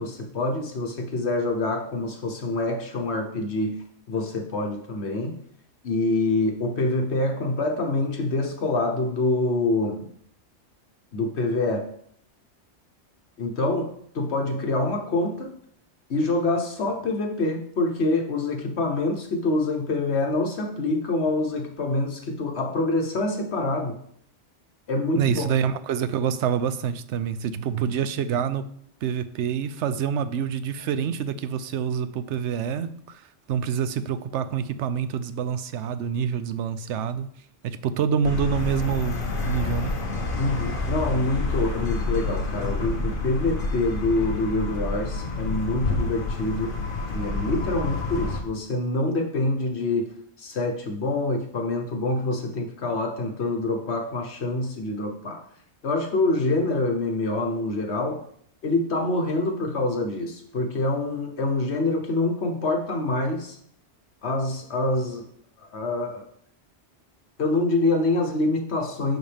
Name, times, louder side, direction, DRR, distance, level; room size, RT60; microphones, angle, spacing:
voice 1, 0.0-3.8 4.1-5.4 5.8-10.0 11.1-11.9 13.4-13.9 14.1-15.5 16.1-24.0 24.9-25.5 40.4-46.8 47.1-50.1 50.4-55.4 55.8-58.2 58.6-63.6 64.2-65.3 65.7-66.3 67.4-69.2, left 2 dB, 70° left, 3 dB, 1.4 m, -26 dB
voice 2, 25.1-28.7 29.0-33.2 33.5-37.3 37.6-39.2 39.4-39.9, right 7 dB, 85° right, 12 dB, 0.9 m, -26 dB
sound 1, 38.2-48.4, left 3 dB, 50° left, 1.1 m, -28 dB
10.5 x 4.2 x 3.5 m, 0.64 s
omnidirectional pair, 1.2 m